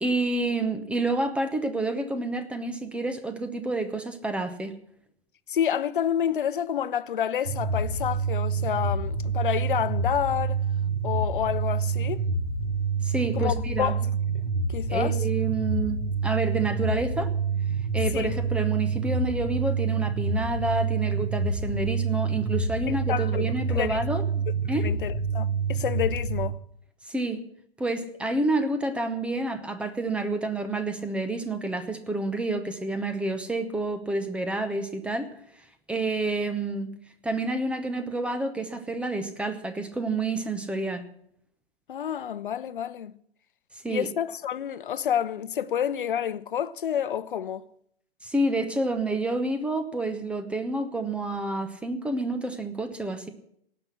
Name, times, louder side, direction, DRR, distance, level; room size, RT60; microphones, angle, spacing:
voice 1, 0.0-4.8 13.0-13.9 14.9-17.3 17.9-24.9 27.0-27.4 27.8-35.3 35.9-37.0 37.2-41.1 43.8-44.1 48.2-53.3, right 2 dB, 5° right, 0.8 m, -29 dB
voice 2, 5.5-10.6 11.0-12.2 13.3-14.1 14.7-15.1 18.1-18.4 23.1-24.0 24.6-26.6 41.9-43.2 43.9-47.6, left 9 dB, 55° left, 0.8 m, -29 dB
sound 1, 7.5-26.5, right 4 dB, 50° right, 3.3 m, -27 dB
17.5 x 6.0 x 9.6 m
figure-of-eight pair, 120°, 30 cm